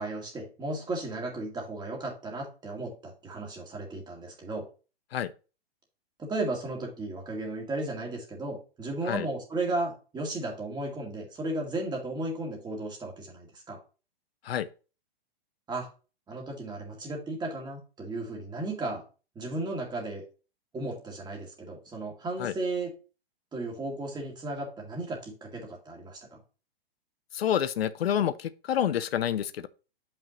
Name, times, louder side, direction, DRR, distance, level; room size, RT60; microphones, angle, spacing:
voice 1, 0.0-4.7 6.2-13.8 15.7-15.9 16.3-19.0 19.4-20.2 20.7-22.9 23.5-26.4, right 2 dB, 15° right, 2.1 m, -35 dB
voice 2, 27.3-29.7, left 10 dB, 85° left, 0.6 m, -28 dB
7.1 x 5.5 x 3.0 m
hypercardioid pair, 135°, 30 cm